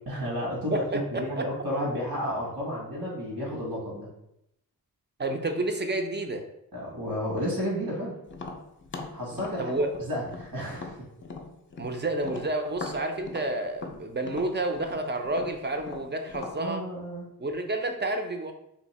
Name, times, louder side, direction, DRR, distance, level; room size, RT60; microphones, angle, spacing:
voice 1, 0.1-4.1 6.7-8.1 9.1-9.8 10.0-10.9 16.6-17.3, equal, 85° right, -4 dB, 1.4 m, -32 dB
voice 2, 0.7-1.5 5.2-6.4 9.6-9.9 11.8-16.9 17.4-18.5, right 2 dB, 30° right, 5 dB, 0.5 m, -30 dB
Tap, 8.3-11.9 12.2-16.6, left 3 dB, 30° left, 0.6 m, -40 dB
2.8 x 2.6 x 4.1 m, 0.80 s
cardioid pair, 65°, 38 cm